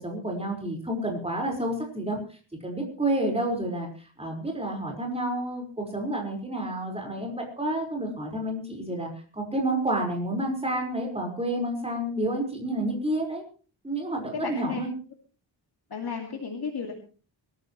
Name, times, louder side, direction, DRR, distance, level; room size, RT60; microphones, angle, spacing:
voice 1, 0.0-2.4 2.6-13.4 13.8-14.9, right 1 dB, 15° right, 0 dB, 5.0 m, -30 dB
voice 2, 14.3-14.8 15.9-16.9, left 5 dB, 55° left, 1 dB, 2.4 m, -33 dB
24.0 x 14.0 x 3.2 m, 0.39 s
wide cardioid pair, 155°, 46 cm